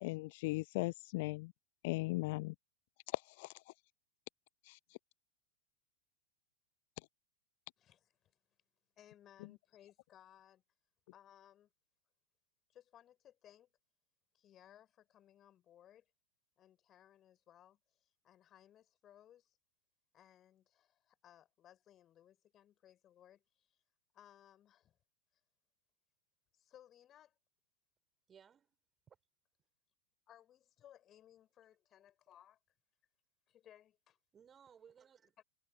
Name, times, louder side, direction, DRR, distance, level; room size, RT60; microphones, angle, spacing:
voice 1, 0.0-1.5 1.8-2.5 3.1-3.5 4.6-4.8, left 23 dB, 50° left, 0.5 m, -38 dB
voice 2, 7.8-8.4 9.0-10.6 11.1-11.7 12.7-13.7 14.3-16.0 16.6-19.6 20.1-23.8 24.1-25.0 26.5-27.4 30.3-32.6 33.5-34.2 35.4-35.5, left 11 dB, 30° left, 8.0 m, -63 dB
voice 3, 28.3-28.8 29.1-29.2 34.3-35.4, right 7 dB, 20° right, 7.8 m, -62 dB
figure-of-eight pair, 90°, 0 cm